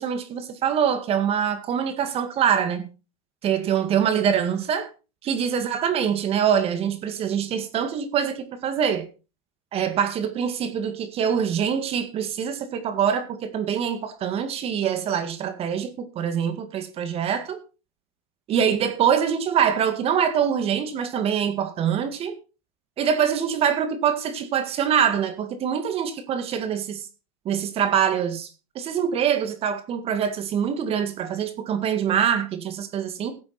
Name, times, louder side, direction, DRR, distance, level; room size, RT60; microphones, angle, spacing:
voice 1, 0.0-2.9 3.4-4.9 5.2-9.1 9.7-17.6 18.5-22.3 23.0-27.1 27.5-28.5 28.8-33.3, right 8 dB, 35° right, 2.0 m, -24 dB
16.0 x 8.4 x 4.4 m
supercardioid pair, 120°, 17 cm